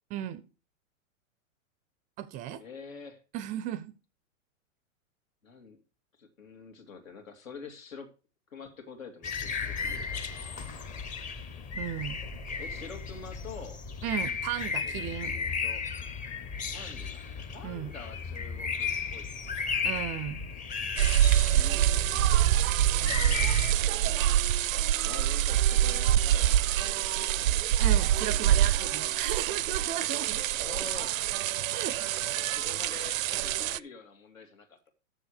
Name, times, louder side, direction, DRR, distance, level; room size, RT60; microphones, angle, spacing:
voice 1, 0.1-0.4 2.2-2.6 3.3-3.9 11.7-12.2 14.0-15.3 17.6-17.9 19.8-20.5 27.8-30.4 31.7-32.6, right 11 dB, 20° right, 0.4 m, -35 dB
voice 2, 2.6-3.2 5.4-5.8 6.2-8.1 8.5-10.6 12.6-13.8 14.8-15.8 16.7-19.9 21.4-22.1 23.6-24.4 25.0-27.6 30.6-31.2 32.5-34.8, left 5 dB, 85° left, 2.6 m, -47 dB
sound 1, 9.2-23.7, left 5 dB, 20° left, 0.7 m, -35 dB
sound 2, 21.0-33.8, right 12 dB, 85° right, 0.5 m, -26 dB
7.0 x 6.8 x 6.5 m
hypercardioid pair, 130°, 39 cm